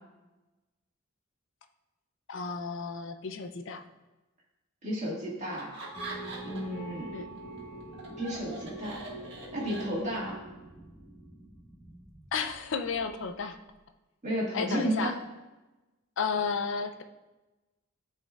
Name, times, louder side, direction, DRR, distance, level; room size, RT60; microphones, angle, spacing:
voice 1, 2.3-3.8 7.1-7.3 12.3-13.6 14.5-15.1 16.2-17.0, left 5 dB, 60° left, 7 dB, 0.5 m, -32 dB
voice 2, 4.8-5.7 6.4-7.1 8.2-9.0 9.5-10.4 14.2-15.1, equal, 35° right, -6 dB, 1.8 m, -32 dB
Laughter, 5.5-6.8 7.2-10.4, right 2 dB, 60° right, 1.5 m, -43 dB
sound 1, 5.9-13.5, right 2 dB, 15° left, 1.5 m, -45 dB
12.0 x 4.2 x 2.4 m, 1.1 s
head